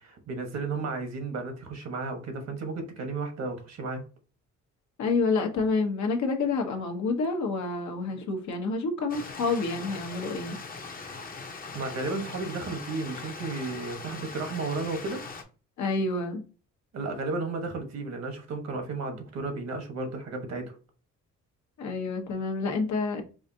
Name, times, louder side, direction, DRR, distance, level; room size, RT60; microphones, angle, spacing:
voice 1, 0.0-4.0 11.7-15.2 16.9-20.8, right 3 dB, 60° right, 1.2 m, -33 dB
voice 2, 5.0-10.6 15.8-16.4 21.8-23.2, left 3 dB, 70° left, 1.0 m, -28 dB
Stream, 9.1-15.4, left 4 dB, 30° left, 0.8 m, -41 dB
4.9 x 2.5 x 2.7 m
cardioid pair, 90°, 30 cm